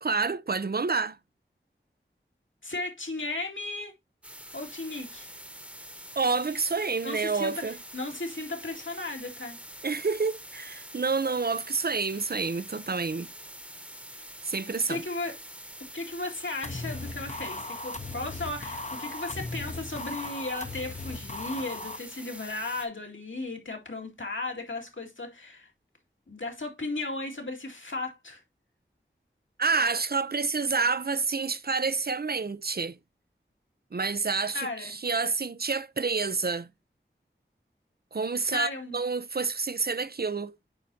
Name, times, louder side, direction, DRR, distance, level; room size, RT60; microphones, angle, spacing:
voice 1, 0.0-1.2 6.2-7.8 9.8-13.3 14.5-15.0 29.6-33.0 33.9-36.7 38.1-40.6, right 4 dB, 50° right, 0.5 m, -28 dB
voice 2, 2.6-3.9 4.5-5.3 7.0-9.6 14.9-15.4 15.9-25.7 26.3-28.4 34.5-34.9 38.5-39.0, left 2 dB, 75° left, 2.2 m, -35 dB
sound 1, 4.2-22.9, equal, 5° right, 1.0 m, -45 dB
sound 2, 16.6-22.0, left 2 dB, 35° left, 0.8 m, -37 dB
8.6 x 5.0 x 2.7 m
wide cardioid pair, 45°, 20 cm